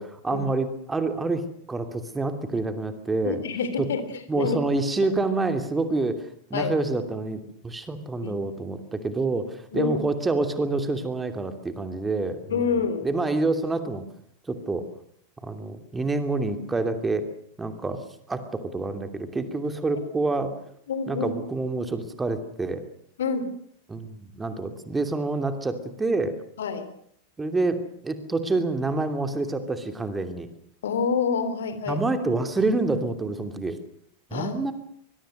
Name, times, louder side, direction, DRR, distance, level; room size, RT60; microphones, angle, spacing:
voice 1, 0.0-3.4 3.8-3.9 4.3-12.7 13.0-14.0 14.5-14.9 15.4-17.3 17.6-20.6 21.1-22.8 23.9-26.3 27.4-30.5 31.9-33.8 34.3-34.7, right 3 dB, 10° right, 8 dB, 2.8 m, -27 dB
voice 2, 3.2-4.6 6.5-6.8 8.2-8.4 9.7-10.0 12.5-13.1 20.0-20.1 20.9-21.3 23.2-23.5 26.6-26.9 30.8-32.0 34.3-34.6, left 5 dB, 60° left, 11 dB, 3.4 m, -27 dB
24.0 x 22.0 x 6.6 m, 0.66 s
figure-of-eight pair, 90°, 0 cm